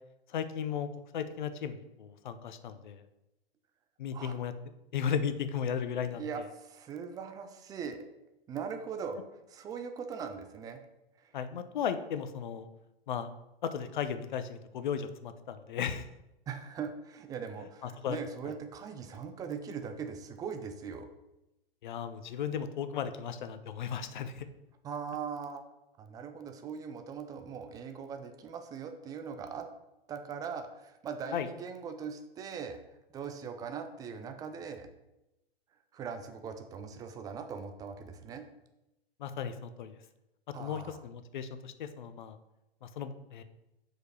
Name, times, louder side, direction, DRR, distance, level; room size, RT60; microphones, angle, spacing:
voice 1, 0.3-3.0 4.0-4.5 4.9-6.2 11.3-12.7 13.1-13.3 13.6-16.1 17.8-18.2 18.4-18.5 21.8-24.5 31.3-31.5 39.2-39.9 40.6-42.4 42.8-43.4, left 7 dB, 50° left, 11 dB, 0.8 m, -35 dB
voice 2, 6.1-8.0 8.5-9.2 9.5-10.8 11.2-11.3 16.5-21.1 24.8-25.6 26.0-29.7 30.1-32.8 33.1-34.9 35.9-38.4 40.5-41.0, right 6 dB, 10° right, 7 dB, 0.5 m, -40 dB
6.3 x 5.1 x 6.1 m, 0.94 s
figure-of-eight pair, 105°, 30 cm